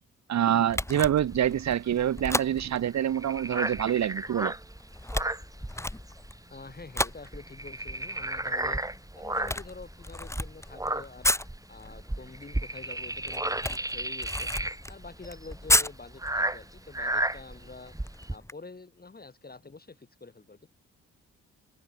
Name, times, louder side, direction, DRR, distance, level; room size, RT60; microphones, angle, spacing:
voice 1, 0.3-4.5, right 10 dB, 55° right, 1.1 m, -26 dB
Camera, 0.7-18.5, left 1 dB, 10° left, 1.8 m, -35 dB
sound 1, 1.3-6.3 6.5-6.7 7.1-9.7 10.3-18.4, right 1 dB, 10° right, 2.0 m, -33 dB
voice 2, 6.5-8.8 9.2-11.3 11.7-14.5 14.9-18.0 18.3-20.7, left 3 dB, 30° left, 3.4 m, -46 dB
supercardioid pair, 55°, 33 cm